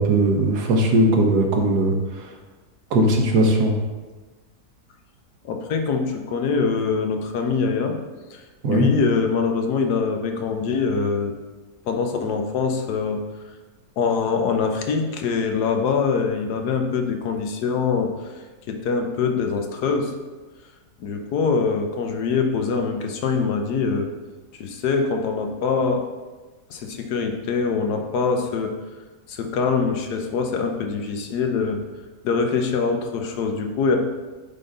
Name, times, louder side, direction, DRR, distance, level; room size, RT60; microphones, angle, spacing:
voice 1, 0.0-1.9 2.9-3.7 8.6-8.9, right 1 dB, 85° right, 2 dB, 1.5 m, -18 dB
voice 2, 5.4-8.0 8.3-11.3 11.9-13.2 14.0-18.1 18.7-20.1 21.0-24.1 24.6-26.0 26.7-28.7 29.3-31.8 32.2-34.0, left 5 dB, 85° left, 4 dB, 1.4 m, -23 dB
9.1 x 3.8 x 3.9 m, 1.3 s
omnidirectional pair, 1.7 m